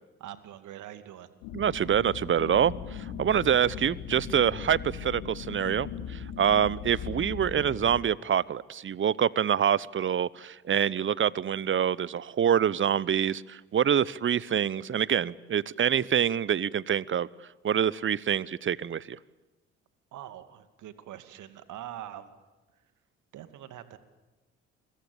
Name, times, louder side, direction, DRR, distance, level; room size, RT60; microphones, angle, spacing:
voice 1, 0.2-1.3 20.1-22.3 23.3-24.0, right 11 dB, 60° right, 11 dB, 2.4 m, -43 dB
sound 1, 1.4-8.0, left 8 dB, 70° left, 2.7 m, -39 dB
voice 2, 1.5-17.3 17.6-19.2, right 8 dB, 35° right, 22 dB, 0.9 m, -26 dB
29.0 x 22.5 x 8.7 m, 1.1 s
figure-of-eight pair, 50°, 35 cm